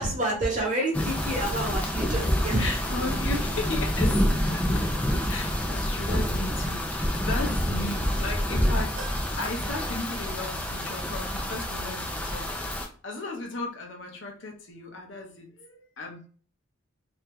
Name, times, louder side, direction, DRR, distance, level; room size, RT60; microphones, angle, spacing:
voice 1, 0.0-2.7, right 1 dB, 35° right, -2 dB, 1.0 m, -28 dB
sound 1, 0.9-12.9, equal, 5° left, 0.3 m, -27 dB
voice 2, 2.6-9.0 9.4-12.5 13.0-16.3, left 3 dB, 65° left, 1 dB, 0.8 m, -36 dB
sound 2, 9.0-10.6 11.0-11.1 12.3-12.4, right 5 dB, 85° right, 0.5 m, -47 dB
2.8 x 2.3 x 3.4 m, 0.43 s
head